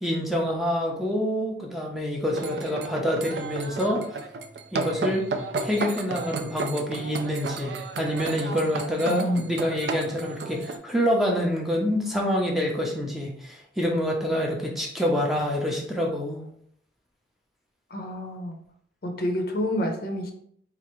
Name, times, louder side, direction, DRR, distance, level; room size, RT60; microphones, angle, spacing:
voice 1, 0.0-4.0 4.7-5.3 5.6-16.4, equal, ahead, -1 dB, 0.5 m, -26 dB
sound 1, 2.3-10.8, right 3 dB, 60° right, 0.4 m, -33 dB
voice 2, 9.1-9.5 17.9-18.6 19.0-20.3, equal, 50° left, 4 dB, 0.5 m, -28 dB
4.4 x 2.4 x 3.0 m, 0.66 s
head